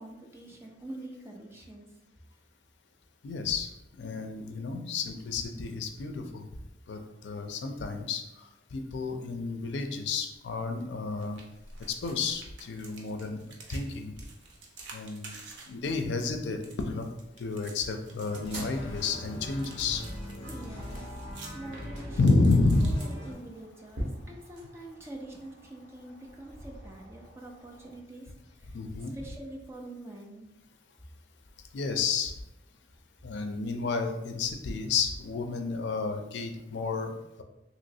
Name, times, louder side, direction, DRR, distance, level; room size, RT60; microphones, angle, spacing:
voice 1, 0.0-1.9 20.5-21.2 21.5-22.5 22.8-28.8 29.1-30.5, right 1 dB, 15° right, -1 dB, 0.4 m, -45 dB
voice 2, 3.2-3.7 4.0-6.5 6.9-11.4 11.9-14.1 14.9-15.4 15.7-17.1 17.4-20.0 22.2-23.0 28.7-29.1 31.7-32.3 33.2-37.4, left 3 dB, 75° left, 6 dB, 0.4 m, -30 dB
sound 1, 11.2-23.6, right 3 dB, 90° right, 0.6 m, -51 dB
sound 2, 18.3-23.3, equal, 30° left, 0.8 m, -41 dB
sound 3, 18.4-27.9, right 1 dB, 70° right, 1.1 m, -45 dB
3.0 x 2.9 x 2.7 m, 0.91 s
head